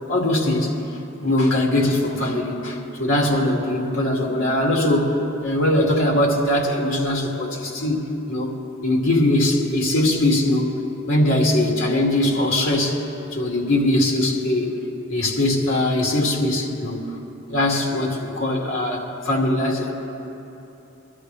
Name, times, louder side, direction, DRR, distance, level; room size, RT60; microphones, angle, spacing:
voice 1, 0.1-0.7 1.2-5.1 5.4-8.5 8.8-10.7 11.1-13.0 13.3-14.7 15.1-17.1 17.5-19.9, left 1 dB, 85° left, -2 dB, 2.6 m, -21 dB
23.0 x 12.5 x 3.4 m, 3.0 s
head